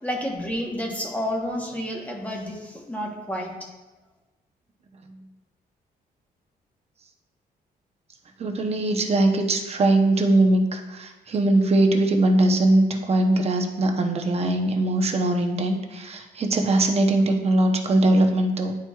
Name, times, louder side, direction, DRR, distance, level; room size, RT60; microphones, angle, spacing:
voice 1, 0.0-3.6, equal, 10° left, -1 dB, 1.0 m, -30 dB
voice 2, 8.4-18.7, right 2 dB, 40° right, 4 dB, 0.7 m, -21 dB
10.5 x 4.5 x 2.3 m, 1.2 s
wide cardioid pair, 145°, 16 cm